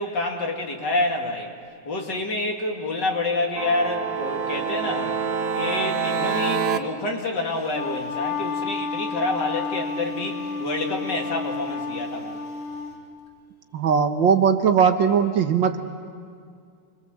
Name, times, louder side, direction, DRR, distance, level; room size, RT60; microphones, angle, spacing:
voice 1, 0.0-1.5 1.9-5.2 5.5-12.4, left 2 dB, 55° left, 1 dB, 2.9 m, -28 dB
sound 1, 3.5-6.8, right 6 dB, 50° right, 1.3 m, -26 dB
Wind instrument woodwind instrument, 7.5-12.9, left 4 dB, 40° left, 2.3 m, -31 dB
voice 2, 13.7-15.8, right 7 dB, 65° right, 7 dB, 1.8 m, -19 dB
27.5 x 22.0 x 7.6 m, 2.2 s
omnidirectional pair, 2.3 m